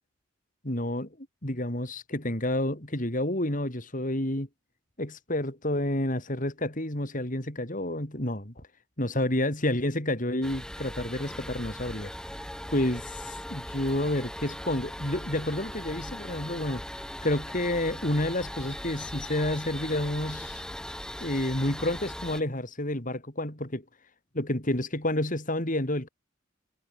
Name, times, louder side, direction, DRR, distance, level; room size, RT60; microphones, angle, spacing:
voice 1, 0.6-1.1 1.4-4.5 5.0-8.7 9.0-12.1 12.7-16.8 17.2-20.6 21.2-23.8 24.3-26.1, left 1 dB, 40° left, 4.7 m, -29 dB
sound 1, 10.4-22.4, equal, 5° left, 1.9 m, -39 dB
head